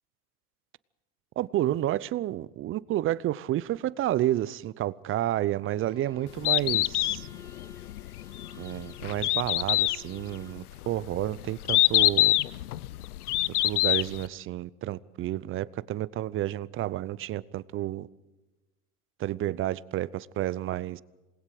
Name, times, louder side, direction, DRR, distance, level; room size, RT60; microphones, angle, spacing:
voice 1, 1.4-7.3 8.6-12.3 13.6-18.1 19.2-21.0, right 14 dB, 30° right, 0.6 m, -30 dB
Bowed string instrument, 5.8-10.7, left 3 dB, 10° left, 3.4 m, -53 dB
Bird, 6.3-14.3, left 16 dB, 75° left, 0.7 m, -26 dB
27.0 x 20.5 x 4.9 m
hypercardioid pair, 95°, 45 cm